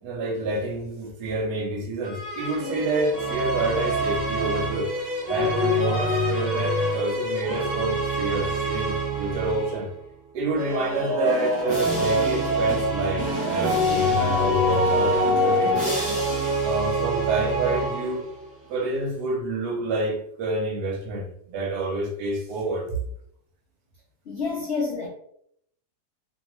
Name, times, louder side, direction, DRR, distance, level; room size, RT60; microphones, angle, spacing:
voice 1, 0.0-4.9 5.3-9.9 10.3-15.8 16.6-18.3 18.7-22.9, right 2 dB, 75° right, 2 dB, 1.2 m, -28 dB
sound 1, 2.0-9.9 10.5-18.4, equal, 15° right, 1.0 m, -25 dB
voice 2, 24.3-25.1, left 4 dB, 90° left, -2 dB, 0.6 m, -28 dB
2.8 x 2.3 x 3.0 m, 0.70 s
omnidirectional pair, 1.9 m